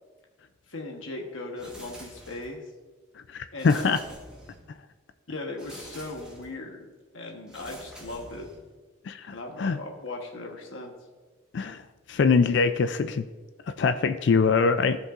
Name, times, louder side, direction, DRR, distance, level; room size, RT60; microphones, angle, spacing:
voice 1, 0.7-2.6 3.5-4.0 5.3-6.9 7.1-8.5 9.3-10.9, left 2 dB, 80° left, 1 dB, 1.2 m, -38 dB
sound 1, 1.6-2.7 3.6-4.8 5.6-6.6 7.5-8.8, right 1 dB, 5° right, 1.3 m, -47 dB
voice 2, 3.3-4.0 9.1-9.8 11.5-11.8 12.1-13.3 13.8-15.0, left 5 dB, 60° left, 10 dB, 0.3 m, -23 dB
15.0 x 5.4 x 2.5 m, 1.3 s
head